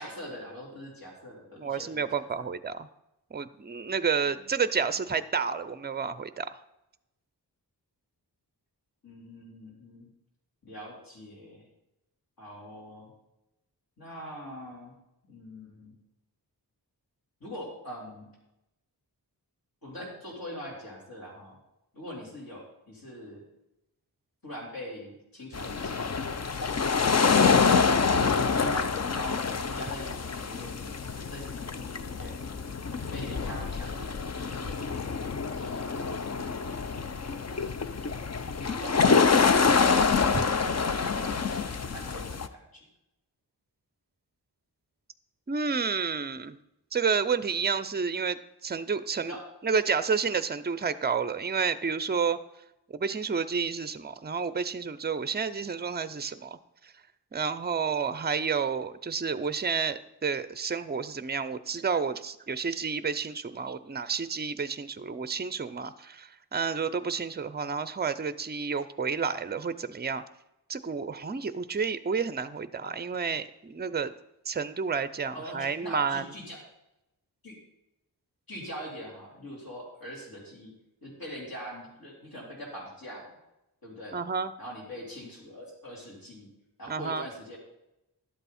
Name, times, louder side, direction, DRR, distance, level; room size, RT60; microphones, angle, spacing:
voice 1, 0.0-2.5 4.2-4.4 4.8-5.1 9.0-10.1 10.6-11.7 12.4-13.1 14.0-14.9 15.2-16.0 17.4-18.3 19.8-21.6 21.9-23.5 24.4-26.2 28.5-30.9 31.2-32.4 32.9-35.2 35.6-36.1 38.6-39.2 40.0-42.8 49.3-49.4 75.3-76.6 77.4-77.6 78.5-80.7 81.0-83.4 83.8-84.2 84.6-86.5 86.8-87.6, equal, 60° left, -3 dB, 4.0 m, -43 dB
voice 2, 1.6-2.9 3.3-6.6 40.3-40.4 45.5-46.6 46.9-49.3 49.6-52.4 52.9-56.6 56.8-56.9 57.3-70.2 70.7-74.1 74.5-76.3 84.1-84.5 86.9-87.2, right 5 dB, 25° right, 14 dB, 0.5 m, -30 dB
sound 1, 25.5-42.5, left 5 dB, 40° left, 0.6 m, -26 dB
11.5 x 8.2 x 4.3 m, 0.90 s
wide cardioid pair, 80°, 41 cm